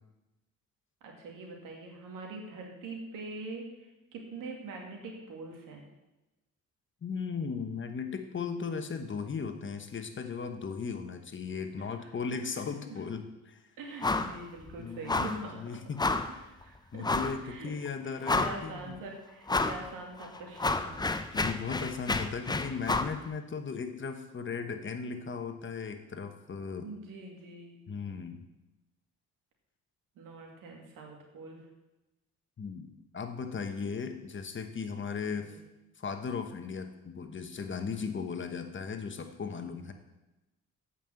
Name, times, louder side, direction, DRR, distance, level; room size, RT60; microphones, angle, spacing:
voice 1, 1.0-5.8 11.8-12.1 12.4-12.6 12.9-13.0 13.8-15.7 16.3-17.7 18.0-21.0 26.8-27.8 30.2-31.7 35.3-35.6 39.5-39.9, right 3 dB, 90° right, 1 dB, 2.3 m, -44 dB
voice 2, 7.0-13.6 14.8-16.0 16.9-19.0 21.3-26.9 27.9-28.4 32.6-35.5 36.0-39.9, left 5 dB, 40° left, 7 dB, 1.1 m, -37 dB
sound 1, 14.0-14.4 14.6-14.8 15.1-15.4 16.0-16.3 17.0-17.4 17.9-18.0 18.2-18.8 19.5-19.8 20.2-23.2, left 3 dB, 15° left, 0.6 m, -30 dB
8.5 x 5.6 x 7.6 m, 1.0 s
cardioid pair, 85°, 31 cm